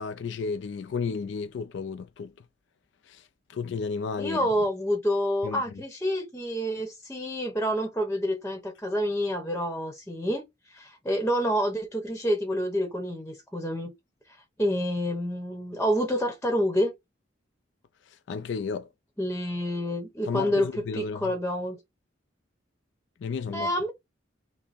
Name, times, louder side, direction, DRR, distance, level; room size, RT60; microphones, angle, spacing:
voice 1, 0.0-2.3 3.0-4.5 5.4-5.6 18.0-18.9 20.3-21.3 23.2-23.7, left 5 dB, 65° left, 0.3 m, -33 dB
voice 2, 4.2-10.4 10.7-13.9 14.3-16.9 19.2-20.7 20.9-21.8 23.5-23.9, equal, 10° left, 0.8 m, -28 dB
5.9 x 2.0 x 4.0 m
head